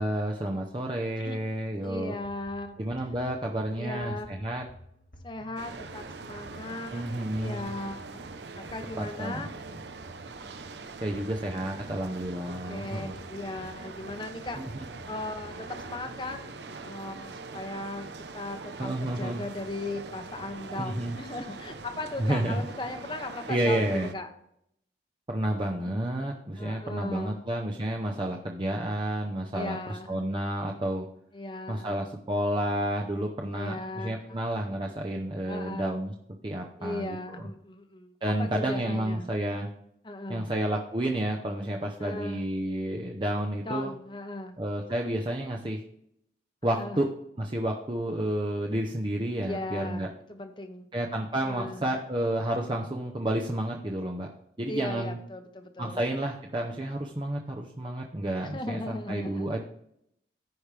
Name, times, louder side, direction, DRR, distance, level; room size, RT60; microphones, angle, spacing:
voice 1, 0.0-2.2 2.8-4.6 6.9-7.8 9.0-9.5 11.0-13.1 14.6-14.7 18.8-19.4 20.8-21.1 22.2-22.7 23.5-24.1 25.3-31.1 31.7-36.1 36.4-37.5 38.2-39.7 40.3-43.9 44.6-45.8 46.6-47.1 47.4-50.1 50.9-54.3 54.6-55.2 55.8-59.6, right 1 dB, 25° right, 0 dB, 0.7 m, -30 dB
voice 2, 1.8-2.8 3.8-4.6 5.2-7.0 7.4-9.5 10.4-10.5 12.5-14.6 15.1-16.5 16.8-18.1 18.3-24.3 25.8-26.0 26.6-27.4 29.5-30.2 31.3-32.1 33.5-34.1 35.5-36.0 36.8-39.3 40.0-40.4 42.0-42.4 43.7-44.6 46.6-47.0 49.4-50.9 51.4-51.9 54.7-56.0 58.5-59.6, left 2 dB, 25° left, 7 dB, 0.8 m, -37 dB
sound 1, 2.2-16.5, equal, 70° left, 2.2 m, -52 dB
sound 2, 5.6-24.1, right 3 dB, 85° right, 0.7 m, -43 dB
15.0 x 5.1 x 3.3 m, 0.75 s
head